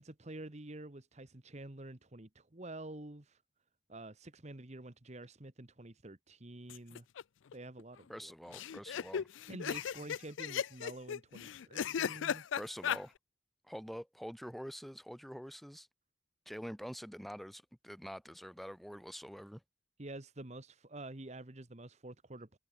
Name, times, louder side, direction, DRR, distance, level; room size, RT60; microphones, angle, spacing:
voice 1, 0.0-3.4 3.9-7.0 7.5-8.3 9.5-12.4 20.0-22.6, right 2 dB, 35° right, 1.4 m, -48 dB
sound 1, 6.7-7.2 7.5-7.6 7.8-7.9 8.5-13.0, left 8 dB, 85° left, 0.4 m, -36 dB
voice 2, 8.1-9.3 12.6-13.1 13.6-15.9 16.5-19.6, equal, ahead, 2.4 m, -46 dB
head